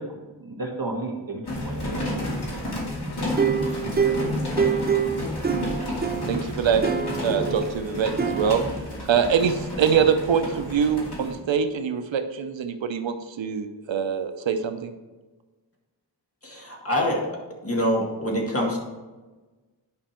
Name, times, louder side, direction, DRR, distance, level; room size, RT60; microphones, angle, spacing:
voice 1, 0.0-2.2, right 2 dB, 50° right, 0 dB, 1.8 m, -33 dB
sound 1, 1.5-11.3, left 1 dB, 60° left, 2.4 m, -31 dB
sound 2, 3.4-6.4 6.8-7.7 8.2-8.5, right 6 dB, 20° right, 0.5 m, -25 dB
voice 2, 6.2-6.8 7.2-8.6 9.1-14.9, right 7 dB, 85° right, 8 dB, 0.7 m, -24 dB
voice 3, 16.4-17.3 17.6-18.8, equal, 30° left, -1 dB, 1.9 m, -25 dB
9.7 x 5.4 x 4.4 m, 1.2 s
wide cardioid pair, 105°, 44 cm